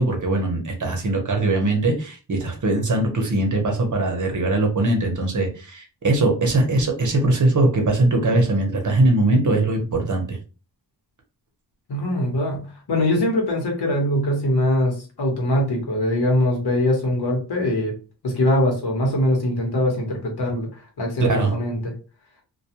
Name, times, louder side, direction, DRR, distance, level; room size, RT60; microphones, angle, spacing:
voice 1, 0.0-10.4 21.3-21.5, right 2 dB, 45° right, 3 dB, 0.8 m, -21 dB
voice 2, 11.9-17.9 18.2-20.7 21.0-21.9, left 1 dB, 65° left, 0 dB, 1.1 m, -22 dB
2.3 x 2.2 x 2.8 m, 0.35 s
wide cardioid pair, 95°, 42 cm